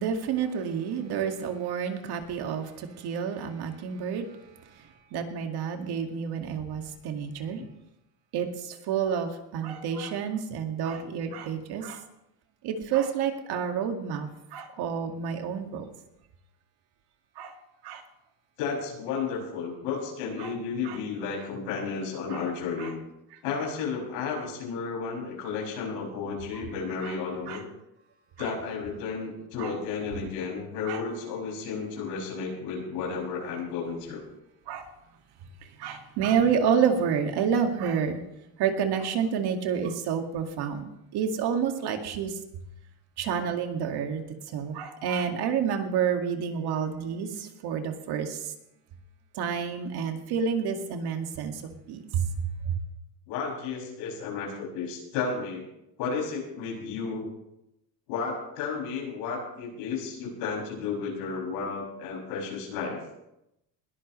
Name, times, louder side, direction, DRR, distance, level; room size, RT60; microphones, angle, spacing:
voice 1, 0.0-4.3 5.1-7.6 8.3-12.0 12.6-15.8 17.4-17.5 17.8-18.0 20.4-20.5 20.8-21.0 22.3-22.4 22.8-22.9 27.0-27.1 27.5-27.6 28.4-28.5 29.6-29.7 30.9-31.0 34.7-34.9 35.8-38.2 38.6-40.9 41.1-42.3 43.2-44.2 44.5-48.4 49.4-51.6 51.9-52.2, right 7 dB, 55° right, 4 dB, 2.1 m, -29 dB
voice 2, 18.6-22.9 23.4-27.6 28.4-34.2 53.3-55.6 56.0-57.3 58.1-63.0, left 5 dB, 80° left, -1 dB, 6.7 m, -33 dB
21.0 x 14.0 x 3.2 m, 0.85 s
supercardioid pair, 125°, 47 cm